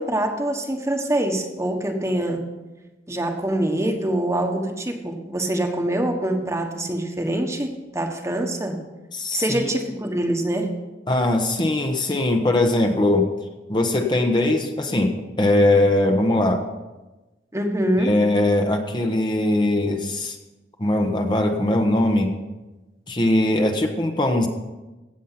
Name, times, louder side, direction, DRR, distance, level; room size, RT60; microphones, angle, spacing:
voice 1, 0.0-2.4 3.1-8.8 9.3-10.7 17.5-18.2, right 1 dB, 15° right, 4 dB, 1.4 m, -24 dB
voice 2, 9.1-9.7 11.1-13.3 13.7-16.6 18.0-20.4 20.8-22.4 23.1-24.5, left 1 dB, 25° left, 3 dB, 1.1 m, -20 dB
16.5 x 7.4 x 5.8 m, 1.1 s
head